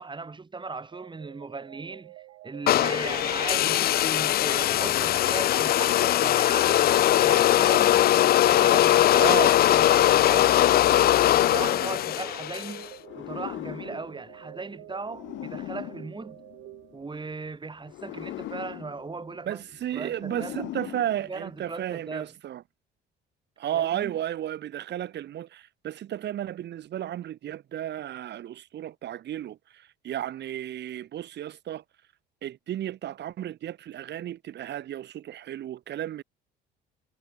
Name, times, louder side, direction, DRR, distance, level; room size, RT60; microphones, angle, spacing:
voice 1, 0.0-8.0 8.4-9.3 9.7-12.9 13.1-16.4 16.9-19.6 19.9-20.7 21.3-22.3 23.7-24.1, right 4 dB, 25° right, 5.0 m, -38 dB
sound 1, 0.9-17.5, right 19 dB, 80° right, 4.6 m, -49 dB
sound 2, 2.7-12.8, left 13 dB, 50° left, 0.4 m, -21 dB
voice 2, 9.1-9.6 19.5-22.6 23.6-31.8 32.4-36.2, right 11 dB, 60° right, 2.4 m, -33 dB
sound 3, 13.0-17.1 17.8-21.8, left 16 dB, 75° left, 3.1 m, -41 dB
supercardioid pair, 80°, 20 cm